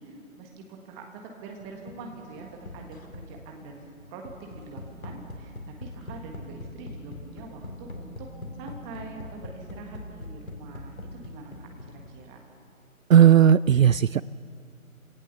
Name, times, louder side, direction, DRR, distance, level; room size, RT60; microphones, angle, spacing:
voice 1, 0.0-8.3 8.6-12.4, right 3 dB, 10° right, 2 dB, 1.6 m, -44 dB
sound 1, 1.6-12.5, left 1 dB, 65° left, 2.9 m, -42 dB
voice 2, 13.1-14.2, right 9 dB, 65° right, 19 dB, 0.5 m, -16 dB
26.0 x 18.0 x 7.0 m, 2.4 s
figure-of-eight pair, 150°, 42 cm